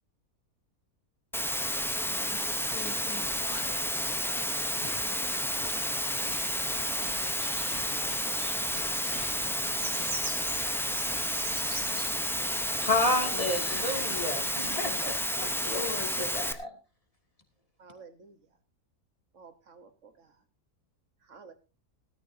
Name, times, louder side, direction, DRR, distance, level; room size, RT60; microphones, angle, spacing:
Water, 1.3-16.5, equal, 5° left, 0.5 m, -31 dB
voice 1, 2.1-3.9 4.3-5.7, left 5 dB, 80° left, 1.7 m, -47 dB
sound 1, 4.8-5.0 5.6-5.9 6.3-7.4 7.7-8.3 8.7-9.3 10.0-10.2 10.5-10.7 11.1-11.3, left 4 dB, 50° left, 2.0 m, -46 dB
sound 2, 6.0-14.7, right 3 dB, 85° right, 3.1 m, -45 dB
voice 2, 12.7-16.7, left 2 dB, 25° left, 2.6 m, -31 dB
voice 3, 17.8-18.4 19.3-20.4 21.2-21.5, right 5 dB, 55° right, 1.5 m, -52 dB
17.5 x 13.5 x 2.7 m
omnidirectional pair, 1.6 m